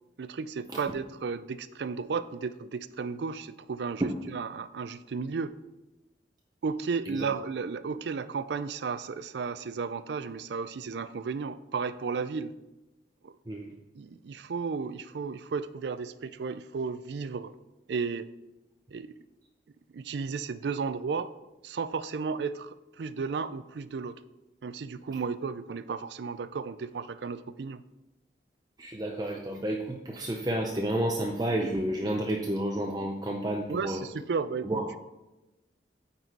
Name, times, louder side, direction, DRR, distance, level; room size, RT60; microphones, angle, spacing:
voice 1, 0.2-5.5 6.6-12.5 13.2-13.4 13.9-17.5 17.9-18.3 18.9-19.2 19.9-21.3 21.6-24.2 24.6-27.8 33.7-34.8, right 5 dB, 70° right, 13 dB, 0.4 m, -34 dB
voice 2, 28.8-34.0 34.6-34.9, right 1 dB, 20° right, 0 dB, 0.5 m, -30 dB
9.1 x 4.1 x 4.6 m, 1.0 s
head